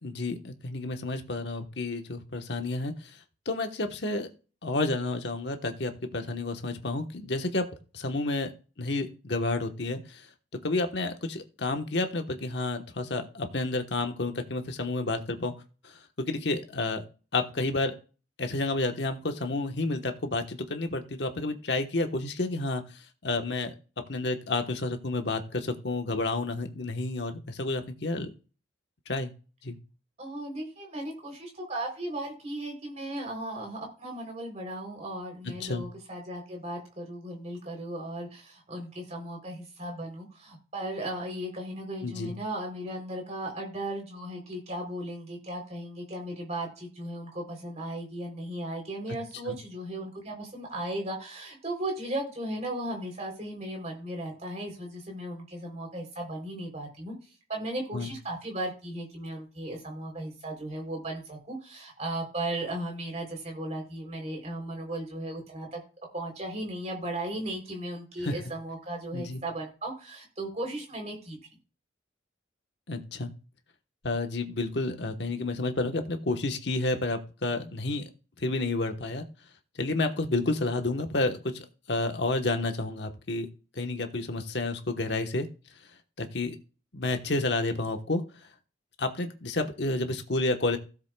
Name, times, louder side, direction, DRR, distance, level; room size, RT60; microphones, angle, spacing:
voice 1, 0.0-3.1 3.5-4.3 4.6-7.7 7.9-8.5 8.8-10.2 10.6-15.5 15.8-15.9 16.2-17.0 17.3-17.9 18.4-22.8 23.2-23.7 24.1-28.3 29.1-29.3 29.6-29.8 35.6-35.8 42.0-42.3 49.5-49.6 57.9-58.1 68.2-68.3 69.1-69.4 72.9-73.3 74.0-78.1 78.4-79.2 79.8-83.5 83.7-85.5 86.2-86.5 86.9-88.2 89.0-90.8, left 2 dB, 60° left, 6 dB, 1.2 m, -30 dB
voice 2, 30.2-57.1 57.5-65.8 66.1-71.4, right 1 dB, 35° right, 1 dB, 3.4 m, -36 dB
16.5 x 7.3 x 2.3 m, 0.36 s
head